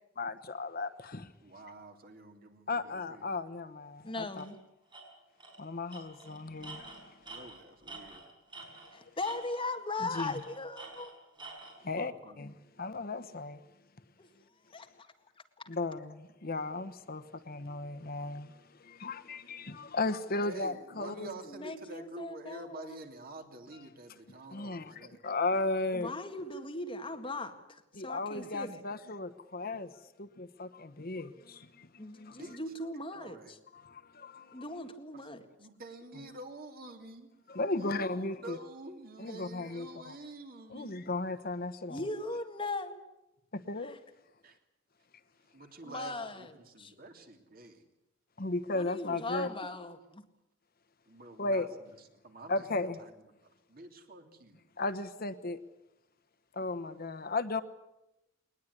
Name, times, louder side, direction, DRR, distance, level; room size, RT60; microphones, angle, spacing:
voice 1, 0.2-1.3 2.7-4.4 5.6-7.0 10.2-10.3 11.8-12.1 12.4-12.5 12.8-13.6 15.7-18.5 18.8-21.3 24.5-26.1 28.0-29.9 30.2-31.9 32.2-32.4 33.7-34.6 37.5-38.6 39.2-40.2 40.7-42.0 43.5-44.0 48.4-49.5 51.4-51.7 52.5-53.0 54.8-55.6 56.5-57.6, left 2 dB, 50° left, 1.1 m, -35 dB
voice 2, 1.4-3.2 7.3-8.2 12.0-12.4 20.4-25.2 32.3-32.6 33.1-33.5 35.1-35.2 35.6-37.3 37.7-41.0 44.4-44.6 45.5-47.8 49.1-49.5 51.1-53.1 53.4-54.6, right 2 dB, 50° right, 3.0 m, -48 dB
voice 3, 4.0-4.6 8.9-11.2 12.2-12.3 14.2-14.3 14.7-15.1 15.6-15.7 21.4-23.0 25.9-28.8 32.0-33.6 34.5-35.5 41.9-43.0 43.8-44.0 45.8-46.5 46.8-46.9 48.7-50.2, left 2 dB, 25° left, 2.0 m, -39 dB
Tools, 4.4-4.5 4.9-5.0 5.4-5.6 5.9-8.9 9.2-9.7 10.1-11.8, right 3 dB, 25° right, 6.2 m, -48 dB
21.5 x 20.0 x 9.6 m
head